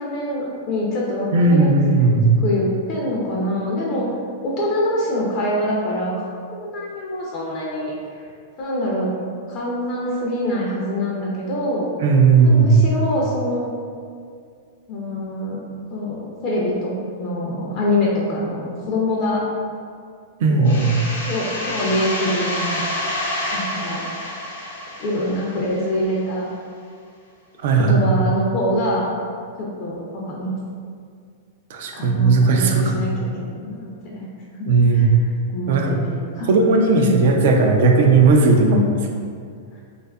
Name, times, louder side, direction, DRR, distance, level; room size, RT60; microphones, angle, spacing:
voice 1, 0.0-1.7 2.4-4.1 4.4-8.2 8.6-9.1 9.5-11.9 12.4-13.7 14.9-16.9 17.2-19.4 20.5-22.8 23.5-24.1 25.0-26.5 27.7-29.1 29.6-30.6 31.9-35.2 35.5-36.5 37.0-37.2 38.6-38.9, left 1 dB, 40° left, -4 dB, 0.4 m, -25 dB
voice 2, 1.3-2.4 12.0-12.9 20.4-21.0 27.6-28.3 31.7-33.1 34.7-35.1 35.7-36.0 36.5-38.9, right 4 dB, 65° right, 2 dB, 0.3 m, -16 dB
sound 1, 20.7-26.2, left 1 dB, 85° left, 0.6 m, -28 dB
2.6 x 2.4 x 2.2 m, 2.2 s
hypercardioid pair, 135°, 0 cm